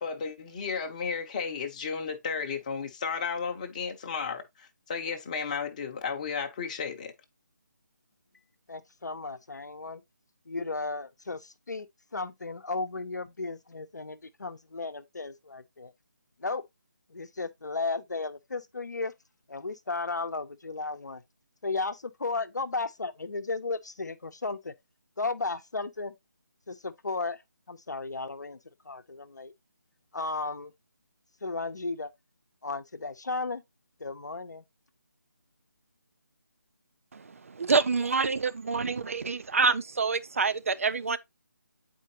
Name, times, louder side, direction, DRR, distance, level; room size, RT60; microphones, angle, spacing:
voice 1, 0.0-7.1, left 5 dB, 25° left, 0.8 m, -33 dB
voice 2, 8.7-10.0 10.5-11.9 12.1-15.9 16.4-16.6 17.1-19.1 19.5-21.2 21.6-24.7 25.2-26.1 26.7-27.4 27.7-28.6 28.8-29.5 30.1-30.7 31.4-32.1 32.6-33.6 34.0-34.6, left 3 dB, 65° left, 0.8 m, -34 dB
voice 3, 37.1-41.2, right 4 dB, 45° right, 0.5 m, -27 dB
8.2 x 4.5 x 2.7 m
figure-of-eight pair, 155°, 10 cm